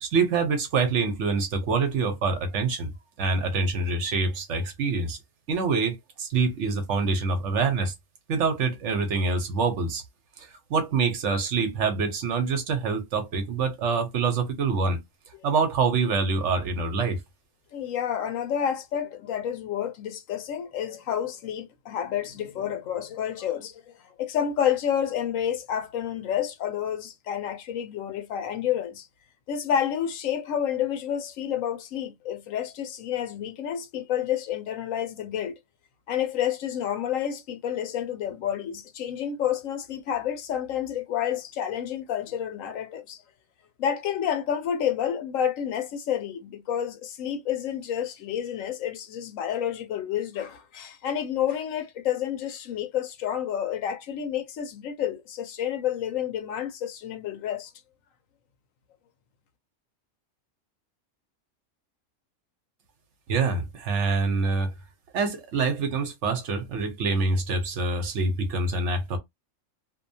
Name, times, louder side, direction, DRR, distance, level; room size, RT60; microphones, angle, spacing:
voice 1, 0.0-2.9 3.2-5.2 5.5-7.9 8.3-10.0 10.4-15.0 15.4-17.2 63.3-64.7 65.1-69.2, right 4 dB, 65° right, 1.1 m, -25 dB
voice 2, 17.7-29.1 29.5-35.6 36.1-43.2 43.8-57.7, left 9 dB, 85° left, 1.0 m, -29 dB
2.7 x 2.2 x 2.6 m
omnidirectional pair, 1.3 m